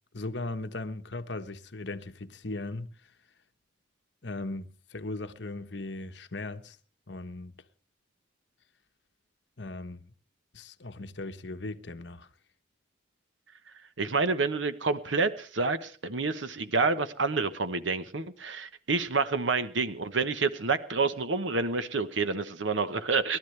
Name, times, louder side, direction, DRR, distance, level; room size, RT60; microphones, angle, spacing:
voice 1, 0.1-3.1 4.2-6.8 7.1-7.5 9.6-10.0 10.5-12.3, left 2 dB, 60° left, 1.2 m, -38 dB
voice 2, 14.0-23.4, right 4 dB, 75° right, 1.0 m, -28 dB
29.5 x 12.5 x 3.3 m
head